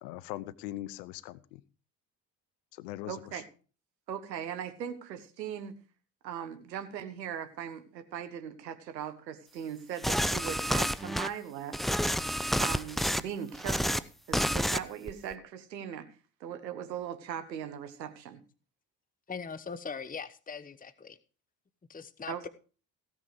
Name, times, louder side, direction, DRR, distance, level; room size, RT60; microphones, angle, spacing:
voice 1, 0.0-1.6 2.7-3.4, left 15 dB, 75° left, 19 dB, 0.8 m, -41 dB
voice 2, 3.1-3.4 4.1-5.8 6.2-11.8 12.6-16.1 16.4-18.4 22.3-22.5, right 8 dB, 85° right, 10 dB, 1.4 m, -39 dB
sound 1, 10.0-11.3 11.7-13.2 13.5-14.0 14.3-14.8 15.1-15.3, equal, ahead, 0.7 m, -29 dB
voice 3, 19.3-21.2 21.9-22.5, left 5 dB, 15° left, 12 dB, 1.0 m, -40 dB
17.0 x 7.5 x 4.8 m, 0.37 s
figure-of-eight pair, 45°, 49 cm